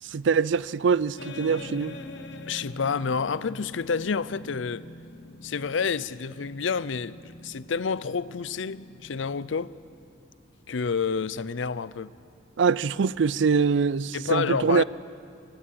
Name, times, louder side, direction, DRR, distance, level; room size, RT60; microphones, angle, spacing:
voice 1, 0.1-2.0 12.6-14.8, right 5 dB, 75° right, 0.4 m, -23 dB
sound 1, 1.2-10.1, left 2 dB, 70° left, 1.1 m, -44 dB
voice 2, 2.5-4.8 5.4-9.7 10.7-12.1 14.1-14.8, left 5 dB, 85° left, 0.6 m, -29 dB
24.5 x 14.5 x 8.6 m
head